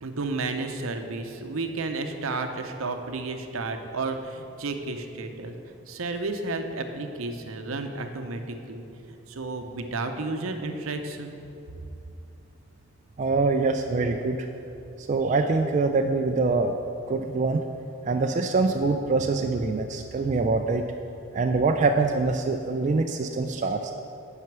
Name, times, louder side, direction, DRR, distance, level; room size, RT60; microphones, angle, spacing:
voice 1, 0.0-5.5 5.9-11.4, right 3 dB, 80° right, 6 dB, 0.7 m, -32 dB
voice 2, 13.2-14.5 15.0-16.8 17.1-17.6 18.1-20.9 21.3-23.9, right 3 dB, 35° right, 4 dB, 0.3 m, -24 dB
9.3 x 5.8 x 6.0 m, 2.8 s
head